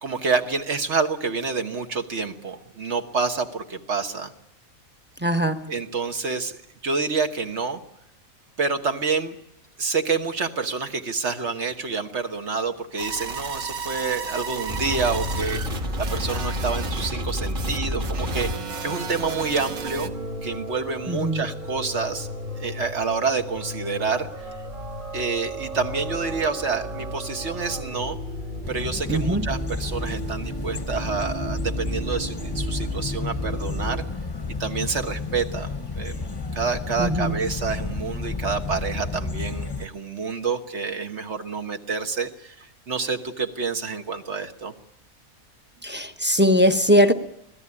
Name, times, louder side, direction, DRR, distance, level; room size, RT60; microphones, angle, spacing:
voice 1, 0.0-4.3 5.7-6.6 6.8-7.8 8.6-9.4 9.8-20.1 20.4-22.3 22.6-24.5 25.1-28.2 28.7-34.0 34.6-44.7, right 4 dB, 55° right, 1.6 m, -28 dB
voice 2, 5.2-5.6 21.1-21.4 29.1-29.5 37.0-37.4 45.8-47.1, equal, 10° right, 0.9 m, -20 dB
sound 1, 13.0-20.1, right 5 dB, 85° right, 1.8 m, -34 dB
sound 2, 14.7-34.0, equal, 35° right, 2.0 m, -32 dB
sound 3, 28.6-39.9, left 4 dB, 20° left, 0.9 m, -32 dB
25.0 x 17.0 x 9.8 m
omnidirectional pair, 1.5 m